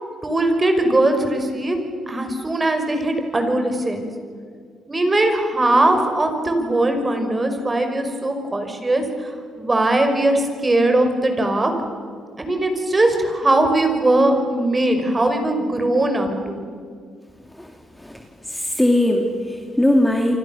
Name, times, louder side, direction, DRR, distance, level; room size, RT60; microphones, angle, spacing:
voice 1, 0.2-1.8 2.1-4.0 4.9-11.7 12.4-16.6, right 1 dB, 20° right, 6 dB, 5.4 m, -20 dB
voice 2, 18.5-20.4, left 1 dB, 5° left, 2 dB, 2.6 m, -19 dB
28.5 x 25.0 x 7.1 m, 2.1 s
cardioid pair, 90°, 0 cm